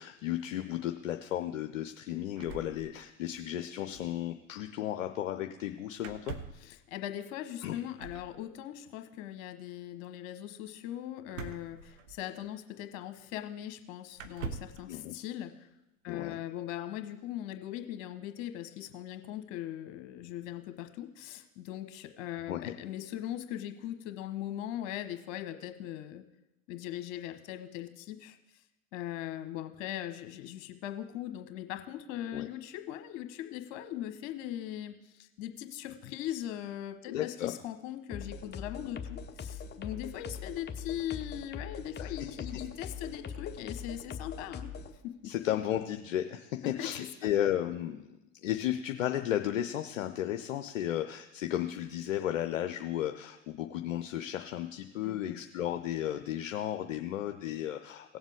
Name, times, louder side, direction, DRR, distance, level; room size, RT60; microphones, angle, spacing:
voice 1, 0.0-6.3 7.6-7.8 14.9-15.2 16.1-16.4 22.5-22.7 32.3-32.5 37.1-37.5 42.0-42.3 45.2-58.2, left 12 dB, 75° left, 6 dB, 0.7 m, -34 dB
sound 1, 2.4-3.4 3.7-3.8 3.9-4.2 6.0-6.7 8.0-8.3 11.3-12.5 13.3-13.4 14.1-14.8, right 5 dB, 70° right, 1.0 m, -43 dB
voice 2, 6.6-15.7 16.0-26.2 26.7-28.4 28.9-44.7 46.6-46.9 55.0-55.4, left 12 dB, 60° left, 8 dB, 1.3 m, -40 dB
sound 2, 38.1-44.9, left 6 dB, 25° left, 1.1 m, -42 dB
17.5 x 7.2 x 3.6 m, 0.93 s
figure-of-eight pair, 75°, 39 cm